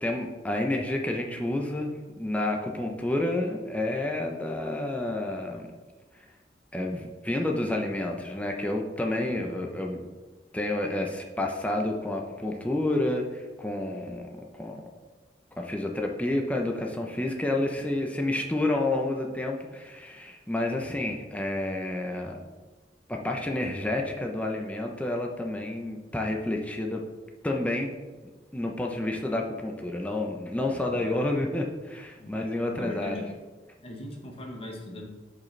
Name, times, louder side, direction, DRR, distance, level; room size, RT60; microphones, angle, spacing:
voice 1, 0.0-5.7 6.7-10.0 10.5-14.3 14.6-14.8 15.6-22.4 23.1-27.0 27.4-27.9 28.5-33.2, left 1 dB, 10° left, 1 dB, 0.6 m, -29 dB
voice 2, 9.2-9.7 30.9-31.2 32.2-33.3 33.8-35.1, left 1 dB, 35° left, 0 dB, 1.0 m, -41 dB
11.0 x 5.1 x 3.2 m, 1.3 s
head